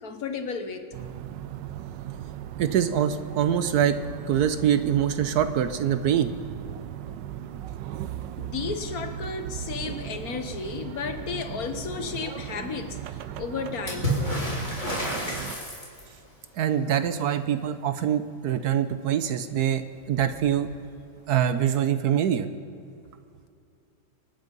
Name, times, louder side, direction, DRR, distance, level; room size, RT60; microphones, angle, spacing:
voice 1, 0.0-0.9 8.4-14.1, left 5 dB, 60° left, 8 dB, 1.4 m, -33 dB
sound 1, 0.9-15.6, right 11 dB, 90° right, 1.3 m, -37 dB
voice 2, 2.6-3.9 4.3-6.3 16.6-20.7 21.3-22.5, right 9 dB, 70° right, 10 dB, 1.2 m, -24 dB
Water / Splash splatter, 13.9-16.3 19.5-19.6 19.9-20.7 21.7-21.8, equal, 25° left, 3.7 m, -30 dB
26.0 x 9.1 x 5.3 m, 2.5 s
omnidirectional pair, 1.9 m